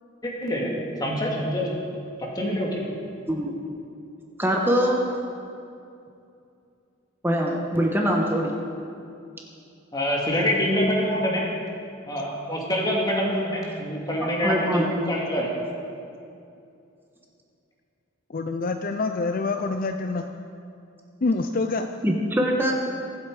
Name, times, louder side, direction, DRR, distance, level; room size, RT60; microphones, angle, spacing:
voice 1, 0.2-1.8 2.2-2.9 9.9-11.6 12.1-15.6, equal, 20° left, -2 dB, 2.4 m, -26 dB
voice 2, 4.4-5.0 7.2-8.5 14.4-14.9 22.0-22.7, equal, 10° right, 0 dB, 1.3 m, -23 dB
voice 3, 18.3-20.3 21.2-21.9, left 3 dB, 45° left, 7 dB, 0.5 m, -26 dB
23.5 x 8.2 x 4.9 m, 2.6 s
head